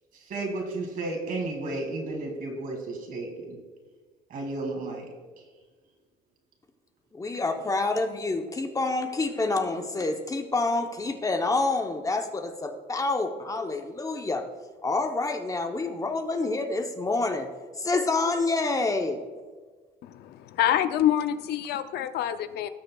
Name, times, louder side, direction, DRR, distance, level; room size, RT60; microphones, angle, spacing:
voice 1, 0.3-3.6 4.3-5.1, right 2 dB, 55° right, 1 dB, 2.5 m, -33 dB
voice 2, 7.1-14.4 14.8-17.5 17.8-19.2, left 3 dB, 20° left, 5 dB, 0.8 m, -27 dB
voice 3, 20.0-22.7, left 11 dB, 75° left, 11 dB, 0.6 m, -26 dB
17.5 x 6.5 x 2.3 m, 1.4 s
cardioid pair, 110°, 17 cm